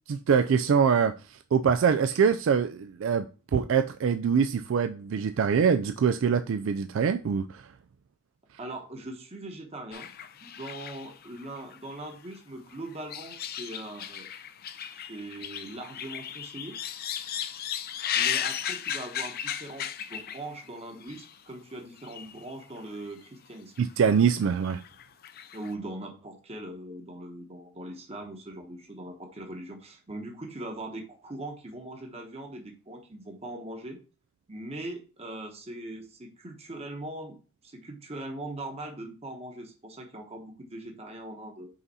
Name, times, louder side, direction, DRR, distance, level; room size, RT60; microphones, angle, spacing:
voice 1, 0.1-7.7 23.8-24.8, right 6 dB, 65° right, 0.3 m, -24 dB
voice 2, 8.6-10.1 10.4-14.3 14.9-16.8 18.1-23.7 25.5-34.0 34.5-37.4 37.6-41.7, right 1 dB, 30° right, 1.0 m, -41 dB
sound 1, 9.9-12.4 12.7-20.7 21.0-21.4 22.0-22.5 22.8-22.9 23.8-24.2 24.4-25.7, left 9 dB, 45° left, 0.5 m, -35 dB
5.7 x 4.0 x 4.1 m
head